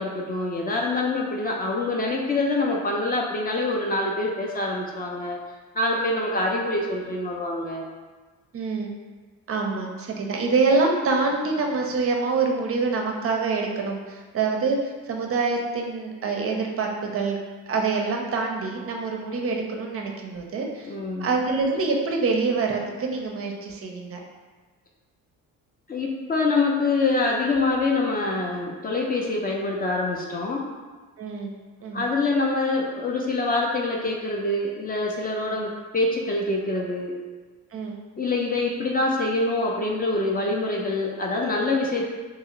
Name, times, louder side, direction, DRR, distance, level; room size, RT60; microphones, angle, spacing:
voice 1, 0.0-5.4 5.7-7.9 20.9-21.3 25.9-30.7 31.9-37.2 38.2-42.0, left 2 dB, 25° left, -1 dB, 0.4 m, -25 dB
voice 2, 8.5-8.9 9.5-17.4 17.7-20.9 21.2-24.2 31.2-31.5 31.8-32.0 35.5-35.7 37.7-38.0, right 4 dB, 40° right, 1 dB, 0.5 m, -26 dB
2.8 x 2.4 x 2.9 m, 1.4 s
cardioid pair, 85°, 35 cm